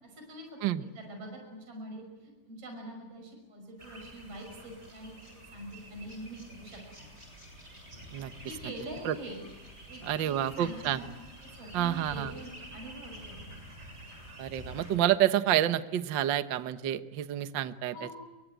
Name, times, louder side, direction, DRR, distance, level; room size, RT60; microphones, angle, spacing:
voice 1, 0.0-7.1 8.4-9.4 9.9-11.1 11.4-13.4 17.9-18.2, right 1 dB, 45° right, 2 dB, 6.9 m, -44 dB
sound 1, 3.8-15.0, equal, 20° right, 7.4 m, -48 dB
voice 2, 10.0-11.0 11.7-12.3 14.4-17.9, right 12 dB, 70° right, 10 dB, 1.0 m, -28 dB
25.0 x 23.5 x 9.2 m, 1.1 s
omnidirectional pair, 3.7 m